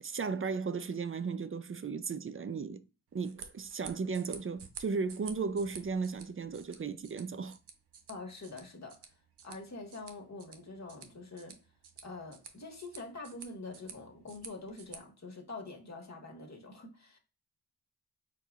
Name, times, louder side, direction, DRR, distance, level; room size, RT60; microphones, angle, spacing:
voice 1, 0.0-2.8 3.1-7.6, right 5 dB, 35° right, 0.5 m, -35 dB
sound 1, 3.1-15.0, right 6 dB, 80° right, 0.8 m, -52 dB
voice 2, 8.1-9.0 9.4-11.6 12.0-17.2, left 3 dB, 40° left, 1.6 m, -45 dB
4.6 x 3.8 x 2.4 m
cardioid pair, 50°, 40 cm